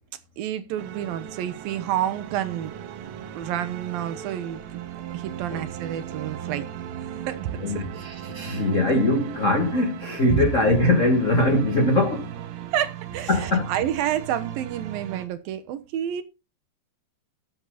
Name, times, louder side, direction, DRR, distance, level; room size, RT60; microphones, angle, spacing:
voice 1, 0.4-2.7 3.4-4.6 5.1-6.7 7.3-7.8 10.3-10.5 12.7-16.2, right 11 dB, 70° right, 2.4 m, -29 dB
sound 1, 0.8-15.3, right 10 dB, 90° right, 3.6 m, -37 dB
voice 2, 7.6-12.3 13.3-13.7, left 2 dB, 30° left, 1.5 m, -22 dB
13.5 x 7.8 x 4.1 m
omnidirectional pair, 4.9 m